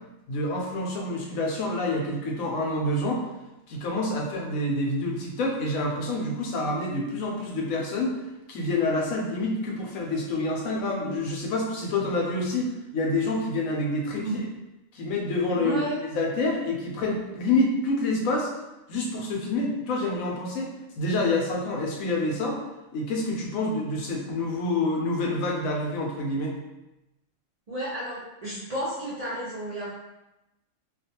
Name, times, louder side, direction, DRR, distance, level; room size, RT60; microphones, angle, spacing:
voice 1, 0.3-3.2 3.7-8.2 8.5-14.3 14.9-15.8 16.1-18.5 18.9-22.6 22.9-26.5, left 2 dB, 90° left, -1 dB, 1.0 m, -27 dB
voice 2, 15.5-16.0 27.7-29.9, right 1 dB, 50° right, -9 dB, 0.4 m, -32 dB
2.4 x 2.3 x 2.7 m, 0.97 s
omnidirectional pair, 1.4 m